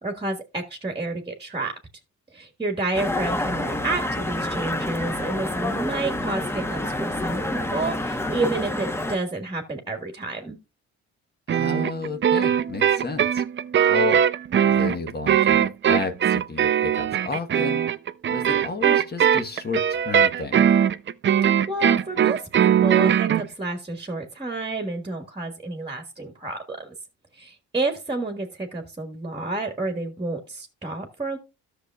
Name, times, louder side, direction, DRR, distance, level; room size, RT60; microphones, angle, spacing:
voice 1, 0.0-1.7 2.3-10.6 21.7-26.9 27.3-31.4, right 2 dB, 15° right, 1.5 m, -30 dB
sound 1, 2.9-9.2, left 1 dB, 10° left, 1.0 m, -28 dB
voice 2, 11.5-13.4 13.9-14.2 14.6-17.8 18.2-20.7, left 3 dB, 35° left, 1.1 m, -31 dB
sound 2, 11.5-23.4, right 9 dB, 40° right, 0.5 m, -20 dB
13.5 x 6.5 x 2.3 m
cardioid pair, 90°, 30 cm